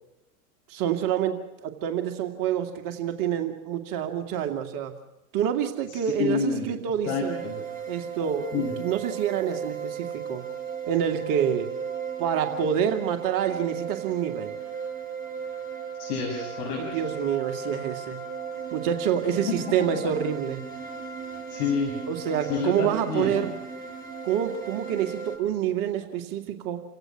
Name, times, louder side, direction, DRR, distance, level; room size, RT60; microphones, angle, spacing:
voice 1, 0.7-5.0 5.3-7.4 7.9-10.5 10.9-11.7 12.2-14.5 16.8-18.2 18.7-20.6 22.1-23.5 24.2-26.8, right 9 dB, 45° right, 6 dB, 2.4 m, -27 dB
voice 2, 6.2-6.7 7.1-7.6 8.5-8.7 16.0-16.8 19.5-19.6 21.5-21.9 22.5-23.4, left 5 dB, 60° left, 0 dB, 7.1 m, -28 dB
sound 1, 7.0-25.4, right 6 dB, 20° right, 5.6 m, -36 dB
29.5 x 17.5 x 6.0 m, 0.93 s
hypercardioid pair, 100°, 45 cm